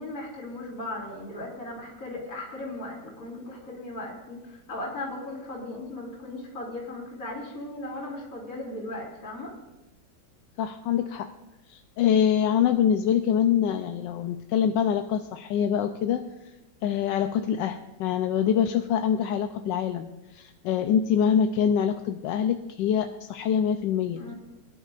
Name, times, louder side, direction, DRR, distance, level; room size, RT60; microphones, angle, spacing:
voice 1, 0.0-9.5 24.1-24.4, left 2 dB, 45° left, -5 dB, 3.0 m, -37 dB
voice 2, 10.6-11.3 11.7-16.2 16.8-24.3, left 8 dB, 80° left, 6 dB, 1.3 m, -25 dB
22.5 x 11.0 x 2.5 m, 1.0 s
omnidirectional pair, 2.0 m